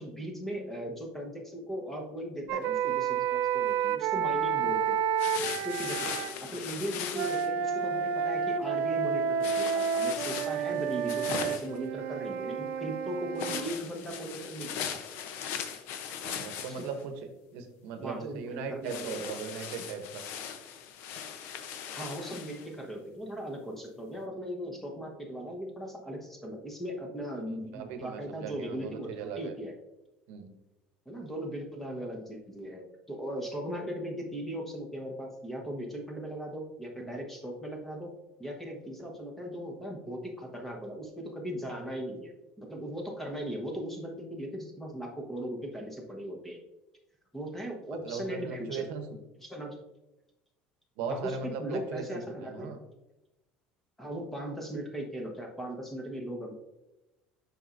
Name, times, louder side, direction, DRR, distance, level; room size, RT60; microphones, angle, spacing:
voice 1, 0.0-5.0 5.4-6.1 6.4-15.0 16.7-16.8 18.0-19.3 21.9-29.7 31.1-38.1 38.4-46.6 47.3-48.9 49.4-49.8 51.1-52.7 54.0-56.5, equal, 5° left, 1 dB, 1.0 m, -38 dB
sound 1, 2.5-6.3 7.1-13.6, right 7 dB, 55° right, 0.4 m, -30 dB
sound 2, 5.2-7.5 9.4-11.8 13.4-17.0 18.9-22.7, left 8 dB, 65° left, 0.6 m, -39 dB
voice 2, 16.2-17.1 17.5-20.2 27.7-29.5 30.3-30.5 48.0-49.2 51.0-52.8, right 5 dB, 75° right, 7 dB, 0.8 m, -38 dB
7.5 x 5.5 x 2.5 m, 0.96 s
cardioid pair, 150°, 4 cm